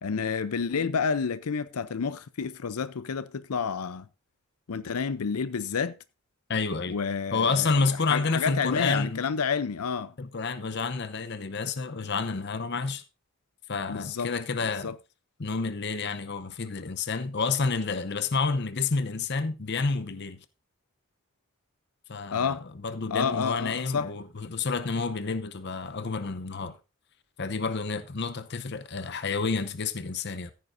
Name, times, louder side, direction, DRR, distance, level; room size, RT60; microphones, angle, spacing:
voice 1, 0.0-4.1 4.7-6.0 6.9-7.8 8.1-10.1 13.9-14.3 14.8-14.9 22.3-22.6 23.1-24.1, left 6 dB, 90° left, 0.6 m, -29 dB
voice 2, 6.5-7.0 7.3-9.3 10.2-13.0 13.7-14.9 15.4-20.4 22.1-26.8 27.4-30.5, left 4 dB, 50° left, 0.7 m, -29 dB
15.0 x 9.4 x 2.6 m
head